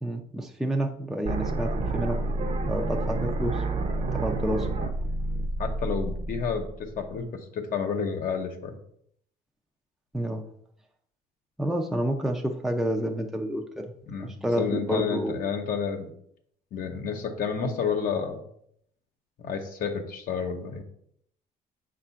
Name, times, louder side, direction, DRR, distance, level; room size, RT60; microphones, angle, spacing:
voice 1, 0.0-3.6 4.1-4.7 10.1-10.4 11.6-13.9 14.2-15.3, right 1 dB, ahead, 2 dB, 0.5 m, -29 dB
sound 1, 1.3-7.2, right 2 dB, 40° right, 0.8 m, -29 dB
voice 2, 5.6-8.8 14.1-16.1 16.7-18.4 19.4-20.8, left 6 dB, 55° left, 3 dB, 0.8 m, -30 dB
7.2 x 2.5 x 5.6 m, 0.70 s
cardioid pair, 110°, 17 cm